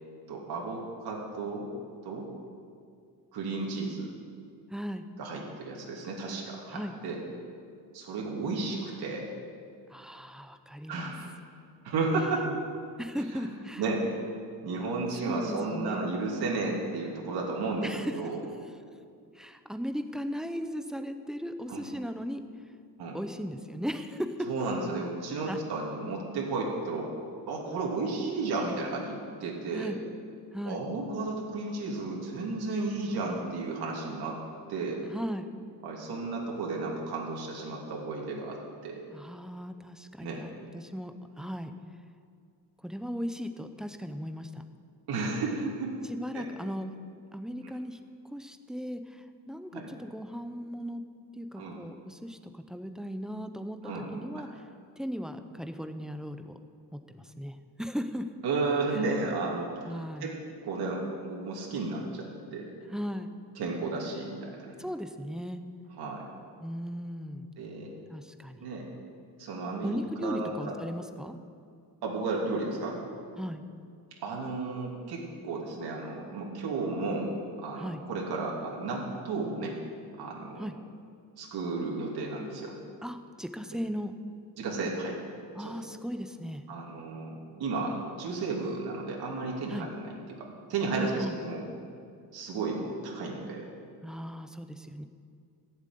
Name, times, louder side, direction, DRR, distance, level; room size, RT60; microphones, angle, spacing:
voice 1, 0.3-1.7 2.0-2.3 3.3-4.1 5.2-7.2 7.9-9.3 10.9-11.3 11.8-12.5 13.3-13.4 13.8-14.2 14.6-18.4 21.7-21.8 23.0-23.2 24.5-27.2 27.5-29.9 30.7-34.4 34.7-35.0 35.8-39.0 40.2-40.4 45.1-45.9 46.3-46.4 49.7-49.9 51.6-51.8 53.8-54.1 58.4-60.3 60.6-62.7 63.6-64.7 66.0-66.2 67.6-67.9 68.6-68.9 69.4-70.7 72.0-73.0 74.2-77.3 77.6-79.8 80.2-80.6 81.4-82.7 84.6-85.2 85.6-85.7 86.7-90.0 90.3-91.6 92.3-93.7, right 3 dB, 65° right, -2 dB, 2.9 m, -33 dB
voice 2, 4.7-5.1 6.7-6.9 9.9-11.1 12.3-12.5 13.0-13.8 15.2-16.0 17.8-18.1 19.3-22.4 23.1-24.5 25.5-25.6 29.7-30.0 30.5-30.8 35.1-35.5 39.1-41.7 42.8-44.6 46.0-46.9 47.3-48.0 48.3-51.0 51.3-54.6 55.0-56.6 56.9-58.3 58.9-59.0 59.9-60.4 62.9-63.3 64.8-65.6 66.6-67.5 68.1-68.7 69.8-71.4 73.4-73.6 77.8-78.0 80.6-80.7 83.0-84.1 85.5-86.6 89.7-89.9 91.1-91.3 94.0-95.0, equal, ahead, 7 dB, 0.7 m, -37 dB
14.0 x 7.7 x 9.2 m, 2.3 s
cardioid pair, 140°, 40 cm